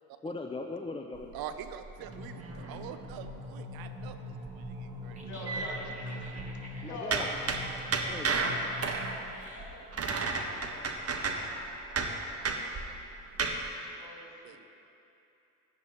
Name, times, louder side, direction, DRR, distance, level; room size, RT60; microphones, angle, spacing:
voice 1, 0.2-1.3 6.8-7.3 8.1-8.5, left 3 dB, 15° left, 3 dB, 0.6 m, -39 dB
sound 1, 1.1-3.5 3.8-4.1 4.4-6.6 7.1-13.7, right 4 dB, 35° right, 1.2 m, -33 dB
voice 2, 1.3-5.6 14.4-14.6, right 9 dB, 55° right, 9 dB, 0.7 m, -45 dB
sound 2, 2.0-9.1, left 1 dB, 80° right, 2.4 m, -43 dB
voice 3, 5.2-8.3 8.8-10.9 14.0-14.6, left 1 dB, 40° left, -1 dB, 2.6 m, -45 dB
sound 3, 5.2-11.8, right 1 dB, 15° right, 2.0 m, -51 dB
16.5 x 11.0 x 2.9 m, 2.8 s
hypercardioid pair, 50°, 42 cm